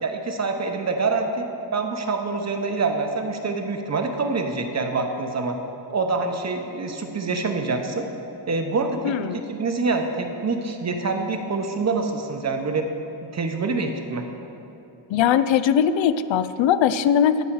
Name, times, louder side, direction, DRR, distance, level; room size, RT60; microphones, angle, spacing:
voice 1, 0.0-5.6 5.9-8.1 8.5-12.8 13.3-14.3, right 3 dB, 35° right, 4 dB, 0.8 m, -26 dB
voice 2, 9.0-9.5 15.1-17.4, left 8 dB, 80° left, 13 dB, 0.5 m, -20 dB
17.5 x 6.3 x 4.7 m, 2.9 s
wide cardioid pair, 165°, 45 cm